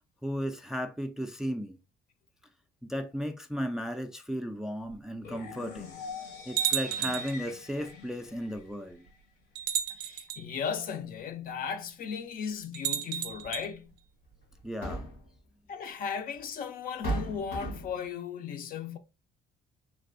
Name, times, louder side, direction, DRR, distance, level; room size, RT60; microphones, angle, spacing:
voice 1, 0.2-1.8 2.8-5.9 6.5-9.1 14.6-15.1, equal, 5° right, 0.3 m, -35 dB
sound 1, 4.9-5.0 5.8-5.9 6.6-7.4 8.6-8.7 9.6-10.4 12.7-13.7, right 10 dB, 85° right, 0.5 m, -32 dB
sound 2, 5.2-9.2, left 5 dB, 75° left, 1.0 m, -44 dB
voice 2, 9.9-13.9 15.7-19.0, left 6 dB, 55° left, 0.5 m, -36 dB
sound 3, 13.4-13.6 14.6-15.3 16.4-16.5 17.0-18.0, right 2 dB, 90° left, 1.7 m, -35 dB
3.3 x 2.6 x 2.5 m
cardioid pair, 110°, 17 cm